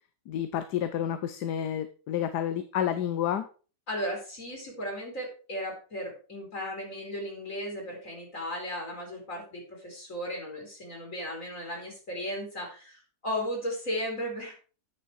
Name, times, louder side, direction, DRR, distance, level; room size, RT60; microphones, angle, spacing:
voice 1, 0.3-3.5, left 10 dB, 85° left, 10 dB, 1.3 m, -30 dB
voice 2, 3.9-14.6, equal, 50° left, 0 dB, 3.4 m, -35 dB
9.4 x 6.5 x 4.6 m, 0.37 s
omnidirectional pair, 1.7 m